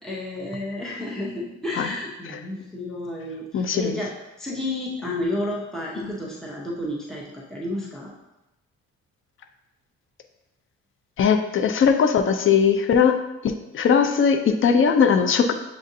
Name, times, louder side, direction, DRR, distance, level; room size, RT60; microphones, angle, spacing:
voice 1, 0.0-8.1, left 1 dB, ahead, -5 dB, 0.8 m, -31 dB
voice 2, 3.5-3.9 6.0-6.1 11.2-13.2 13.4-15.5, left 6 dB, 45° left, 7 dB, 0.5 m, -19 dB
7.4 x 2.5 x 2.7 m, 0.95 s
cardioid pair, 90°, 30 cm